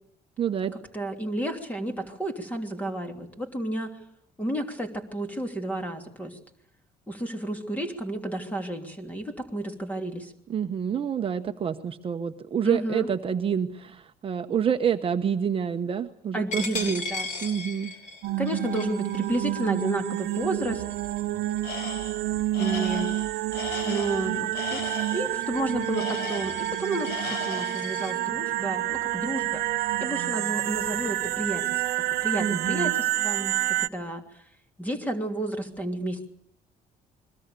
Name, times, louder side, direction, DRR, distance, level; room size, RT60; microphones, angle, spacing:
voice 1, 0.4-0.7 10.5-17.0 17.4-17.9 32.4-32.9, right 8 dB, 35° right, 6 dB, 1.1 m, -28 dB
voice 2, 0.9-4.0 4.4-6.4 7.1-10.3 12.6-13.1 16.3-17.3 18.4-20.8 22.6-23.1 23.9-29.6 30.0-34.4 34.8-36.3, right 1 dB, 10° left, 6 dB, 3.1 m, -31 dB
Coin (dropping), 16.5-21.9 22.4-22.6 23.0-28.1, left 3 dB, 50° left, 5.6 m, -39 dB
sound 1, 18.2-33.9, right 16 dB, 80° right, 1.0 m, -29 dB
Tools, 21.6-22.2 22.5-25.3 25.9-26.8 27.0-27.9, left 5 dB, 85° left, 6.3 m, -36 dB
29.5 x 22.5 x 6.9 m, 0.71 s
cardioid pair, 155°, 16 cm